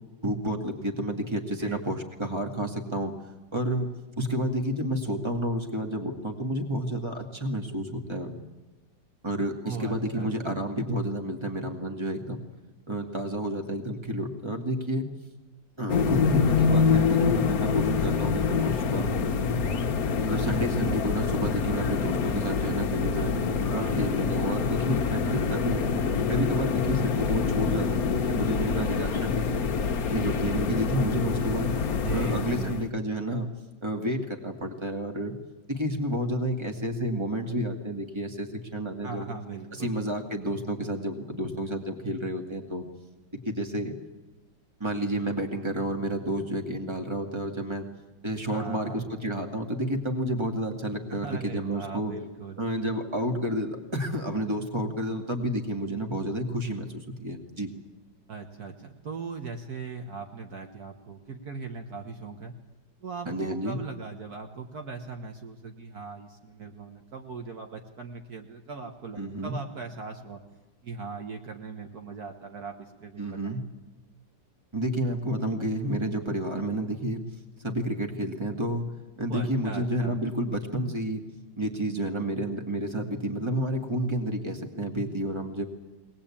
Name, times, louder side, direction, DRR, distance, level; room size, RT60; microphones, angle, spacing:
voice 1, 0.2-3.1 3.5-3.9 4.2-8.4 9.2-12.4 12.9-15.1 15.8-19.1 20.2-23.3 23.7-25.9 26.3-29.7 30.1-31.7 32.1-33.5 33.8-35.3 35.7-39.3 39.7-42.8 43.4-43.9 44.8-47.8 48.2-52.1 52.6-57.7 63.3-63.8 69.2-69.6 73.2-73.6 74.7-77.2 77.6-78.9 79.2-81.2 81.6-85.6, right 1 dB, 15° right, 3 dB, 2.3 m, -30 dB
voice 2, 9.6-10.6 23.2-24.1 32.0-32.8 39.0-39.9 48.5-49.1 51.1-52.6 58.3-62.6 63.0-70.4 70.8-73.6 79.3-80.2, right 4 dB, 60° right, 4 dB, 1.8 m, -39 dB
sound 1, 15.9-32.9, left 5 dB, 55° left, 1.4 m, -26 dB
22.0 x 19.5 x 8.7 m, 1.1 s
omnidirectional pair, 2.0 m